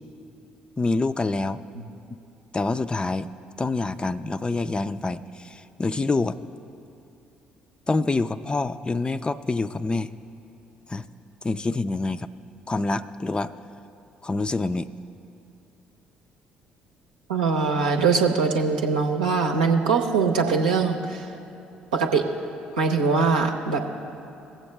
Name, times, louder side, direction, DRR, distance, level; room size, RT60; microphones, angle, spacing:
voice 1, 0.8-1.6 2.5-3.3 3.6-6.4 7.9-10.1 10.9-11.1 11.4-12.3 12.7-13.5 14.2-14.9, left 3 dB, 20° left, 13 dB, 0.4 m, -26 dB
voice 2, 17.3-21.3 21.9-22.3 22.8-23.8, right 4 dB, 80° right, 2 dB, 0.8 m, -22 dB
18.0 x 7.7 x 3.3 m, 2.8 s
figure-of-eight pair, 50°, 4 cm